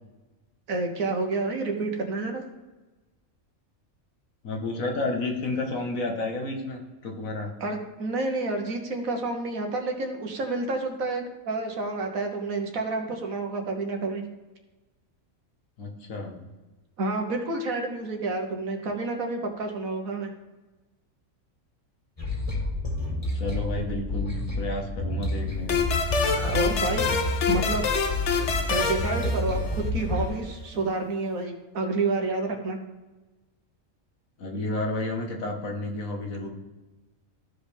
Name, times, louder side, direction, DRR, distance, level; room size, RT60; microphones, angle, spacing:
voice 1, 0.7-2.4 7.6-14.2 17.0-20.3 26.2-27.1 27.5-27.8 28.7-32.8, right 3 dB, 80° right, 3 dB, 1.5 m, -29 dB
voice 2, 4.4-7.5 15.8-16.3 23.3-25.8 34.4-36.5, left 2 dB, 75° left, 2 dB, 1.8 m, -31 dB
sound 1, 22.2-30.3, left 2 dB, 25° left, 2.1 m, -29 dB
sound 2, 25.7-30.0, left 5 dB, 60° left, 1.1 m, -27 dB
14.0 x 5.2 x 3.4 m, 1.2 s
omnidirectional pair, 1.4 m